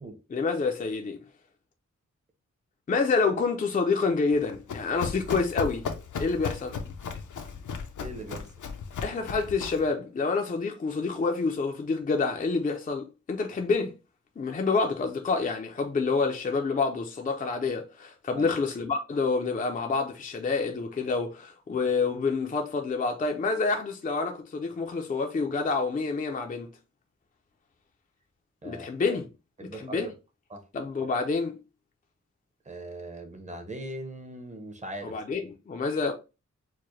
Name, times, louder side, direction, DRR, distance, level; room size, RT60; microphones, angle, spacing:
voice 1, 0.3-1.2 2.9-5.9 6.2-6.8 9.0-13.9 14.4-26.7 28.6-29.3 29.6-30.1 30.7-31.6 35.0-36.1, left 4 dB, 30° left, 0.4 m, -28 dB
Run, 4.3-9.9, left 6 dB, 85° left, 0.7 m, -35 dB
voice 2, 8.0-8.4 18.4-18.5 28.6-28.9 29.6-30.1 30.5-30.6 32.7-35.2, right 1 dB, 25° right, 0.7 m, -39 dB
4.7 x 2.1 x 3.0 m
wide cardioid pair, 175°, 30 cm